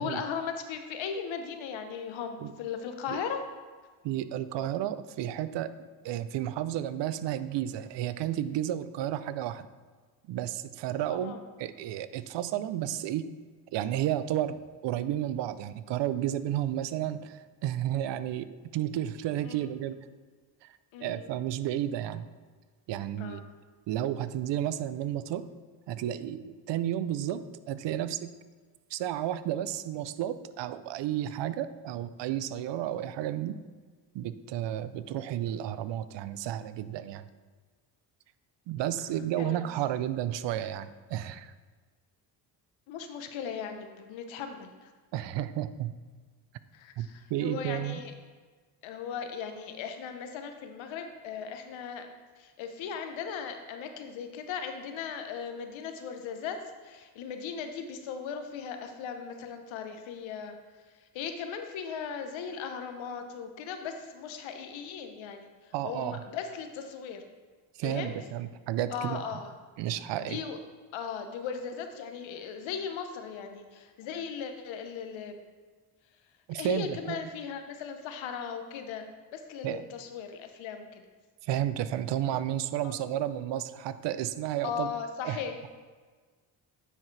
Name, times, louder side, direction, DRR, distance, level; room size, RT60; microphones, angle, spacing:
voice 1, 0.0-3.4 11.1-11.4 19.5-19.6 20.9-21.3 23.2-23.4 39.4-39.6 42.9-44.9 46.7-48.1 48.8-52.1 52.4-56.6 56.8-60.5 61.1-65.5 65.8-67.2 67.8-68.1 68.9-69.5 70.2-70.6 70.9-75.4 76.5-79.0 79.3-81.0 82.8-83.0 84.6-85.7, left 7 dB, 75° left, 6 dB, 1.0 m, -37 dB
voice 2, 4.0-5.7 6.0-9.7 10.3-13.3 13.7-14.6 14.8-20.0 20.6-22.3 22.9-23.4 23.9-25.5 25.9-28.3 28.9-33.6 34.1-37.3 38.7-41.5 45.1-46.0 47.0-48.0 65.7-66.2 67.8-69.2 69.8-70.4 76.5-77.2 79.6-79.9 81.4-84.9 85.2-85.4, right 12 dB, 65° right, 14 dB, 0.6 m, -32 dB
9.9 x 4.6 x 3.3 m, 1.4 s
supercardioid pair, 65°, 47 cm